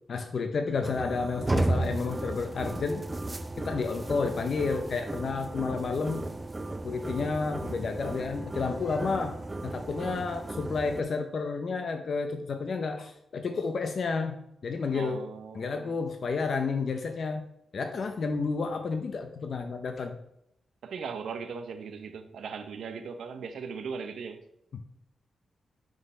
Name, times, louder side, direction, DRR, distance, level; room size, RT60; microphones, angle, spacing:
voice 1, 0.1-3.1 3.6-6.2 6.8-9.4 9.6-15.2 15.5-17.4 17.7-20.2, left 4 dB, 60° left, 0.6 m, -31 dB
sound 1, 0.8-11.0, right 2 dB, 20° right, 0.4 m, -34 dB
voice 2, 14.9-16.0 20.8-24.4, right 5 dB, 80° right, 0.7 m, -38 dB
6.2 x 3.9 x 5.4 m
cardioid pair, 90°, 0 cm